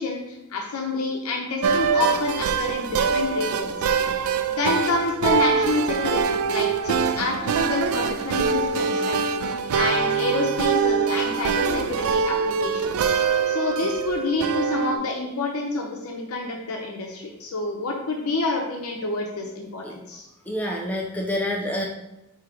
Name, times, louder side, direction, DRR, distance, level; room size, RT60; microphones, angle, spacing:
voice 1, 0.0-3.9 4.6-12.9 13.5-20.3, left 3 dB, 85° left, 1 dB, 0.6 m, -28 dB
sound 1, 1.6-15.0, right 6 dB, 70° right, 0.3 m, -24 dB
voice 2, 20.5-21.8, left 1 dB, 5° left, -1 dB, 0.3 m, -27 dB
4.6 x 2.9 x 3.6 m, 0.97 s
head